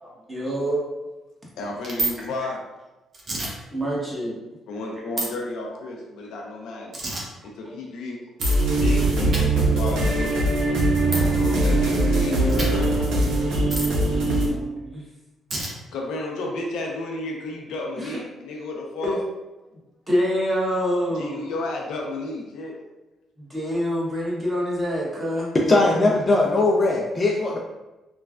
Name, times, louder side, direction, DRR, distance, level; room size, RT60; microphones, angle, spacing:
voice 1, 0.0-0.8 3.7-4.4 7.7-7.8 11.0-11.2 12.4-12.5 13.1-13.2 13.5-15.0 18.0-18.2 19.0-19.2 20.1-21.5 23.4-25.5, equal, 15° right, -5 dB, 1.0 m, -27 dB
voice 2, 1.6-2.6 4.7-7.0 7.4-8.2 8.7-10.3 11.1-13.2 15.9-19.2 21.1-22.8, left 2 dB, 85° left, -1 dB, 0.5 m, -32 dB
sound 1, 1.8-2.1 3.1-3.5 5.2-5.3 6.9-7.2 8.4-8.6 9.3-9.4 11.1-11.2 12.5-12.7 13.7-13.9 15.5-15.7, right 2 dB, 45° right, 0.8 m, -27 dB
sound 2, 8.4-14.5, right 2 dB, 85° right, 0.7 m, -21 dB
voice 3, 25.7-27.6, left 2 dB, 35° left, -2 dB, 0.4 m, -19 dB
3.1 x 2.2 x 2.4 m, 1.0 s
cardioid pair, 90°, 0 cm